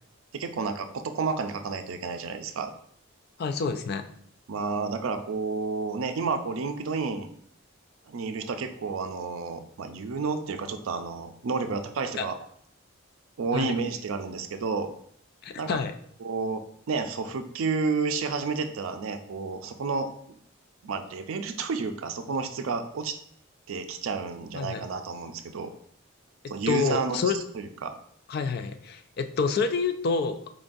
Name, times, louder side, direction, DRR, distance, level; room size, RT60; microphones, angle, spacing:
voice 1, 0.3-2.7 4.5-7.3 8.1-12.4 13.4-14.9 15.6-15.8 16.2-20.4 20.8-23.2 23.7-25.7 26.5-28.0, right 4 dB, 75° right, 8 dB, 0.4 m, -31 dB
voice 2, 3.4-4.1 12.2-12.3 13.5-13.7 15.4-15.9 24.5-24.8 26.7-27.4 28.3-30.5, left 5 dB, 50° left, 8 dB, 0.3 m, -28 dB
4.6 x 3.8 x 2.5 m, 0.65 s
head